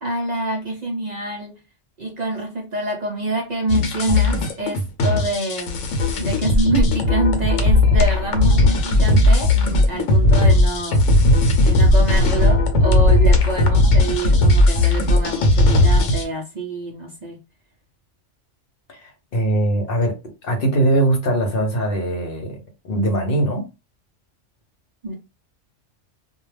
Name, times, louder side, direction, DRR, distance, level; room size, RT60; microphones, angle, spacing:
voice 1, 0.0-1.6 2.0-5.9 6.2-17.4 25.0-25.1, right 2 dB, 50° right, 0.5 m, -26 dB
sound 1, 3.7-16.3, left 1 dB, 85° left, 1.0 m, -16 dB
voice 2, 18.9-20.2 20.4-22.6 22.8-23.6, right 1 dB, 55° left, 0.8 m, -21 dB
2.3 x 2.2 x 3.2 m
omnidirectional pair, 1.3 m